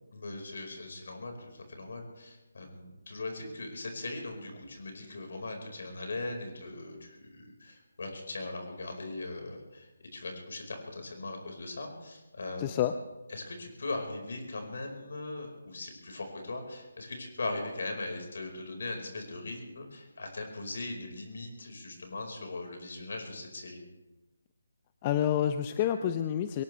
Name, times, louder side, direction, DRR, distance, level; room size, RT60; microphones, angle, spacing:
voice 1, 0.1-12.8 13.3-23.8, left 2 dB, 60° left, 3 dB, 4.9 m, -39 dB
voice 2, 12.6-12.9 25.0-26.6, left 10 dB, 25° left, 9 dB, 0.6 m, -28 dB
23.0 x 18.0 x 3.4 m, 1.1 s
figure-of-eight pair, 155°, 0 cm